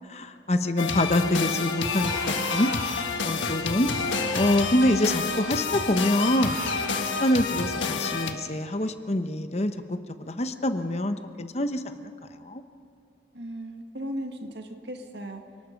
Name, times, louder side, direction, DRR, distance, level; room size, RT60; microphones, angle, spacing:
voice 1, 0.1-2.2 2.5-2.7 3.2-3.9 4.3-6.6 7.2-12.1 12.4-12.6, left 1 dB, 35° left, 8 dB, 0.9 m, -25 dB
sound 1, 0.8-8.3, left 4 dB, 90° left, 1.5 m, -29 dB
sound 2, 1.8-3.2 3.8-4.9 6.2-7.1, right 1 dB, 20° right, 4.7 m, -38 dB
voice 2, 13.3-15.4, equal, 65° right, 5 dB, 1.9 m, -36 dB
28.5 x 19.0 x 5.3 m, 2.5 s
head